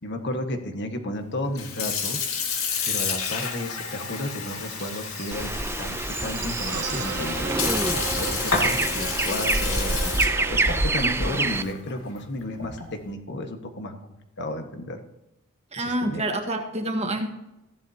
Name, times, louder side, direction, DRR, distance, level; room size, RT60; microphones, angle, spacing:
voice 1, 0.0-2.3 2.8-5.5 5.8-7.5 8.2-15.0 15.7-16.2, left 1 dB, 55° left, 5 dB, 1.6 m, -33 dB
Sink (filling or washing) / Fill (with liquid), 1.4-13.0, left 5 dB, 70° left, 2.2 m, -31 dB
Buzz, 4.4-11.7, right 4 dB, 55° right, 1.7 m, -36 dB
sound 1, 5.3-11.6, right 2 dB, 10° right, 0.5 m, -26 dB
voice 2, 15.7-17.3, right 1 dB, 30° right, 4 dB, 1.6 m, -27 dB
15.5 x 10.5 x 2.9 m, 0.93 s
head